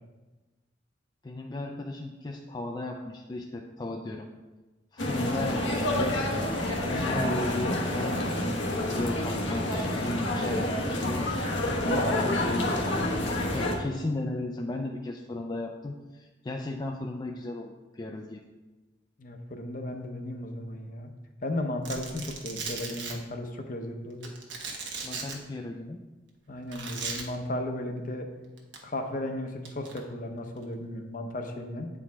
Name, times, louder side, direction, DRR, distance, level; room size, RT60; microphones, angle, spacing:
voice 1, 1.2-4.3 4.9-6.2 6.9-11.2 11.9-13.2 13.5-18.4 25.0-26.0, left 2 dB, 25° left, 2 dB, 0.3 m, -35 dB
sound 1, 5.0-13.8, left 1 dB, 85° left, 1.1 m, -28 dB
voice 2, 19.2-21.1 21.4-24.3 26.5-28.3 28.8-31.9, left 1 dB, 45° left, 5 dB, 0.7 m, -35 dB
Domestic sounds home sounds, 21.8-23.1 24.2-25.3 26.7-27.2 28.6-28.8 29.6-30.0, right 5 dB, 80° right, 1.1 m, -36 dB
8.6 x 4.7 x 3.5 m, 1.2 s
head